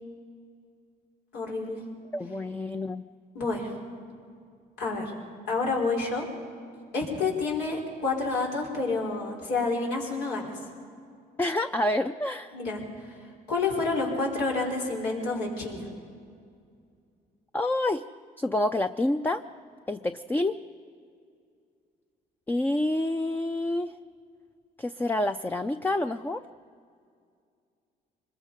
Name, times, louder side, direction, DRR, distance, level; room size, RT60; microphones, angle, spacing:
voice 1, 1.3-1.8 3.3-3.7 4.8-5.1 5.5-6.3 6.9-10.6 12.5-13.2 13.5-15.9, left 3 dB, 90° left, -2 dB, 5.4 m, -29 dB
voice 2, 2.1-3.1 11.4-12.6 17.5-18.0 18.4-19.4 19.9-20.6 22.5-23.9 24.8-26.4, left 1 dB, 10° left, 9 dB, 0.5 m, -28 dB
25.5 x 22.0 x 5.2 m, 2.3 s
cardioid pair, 110°, 17 cm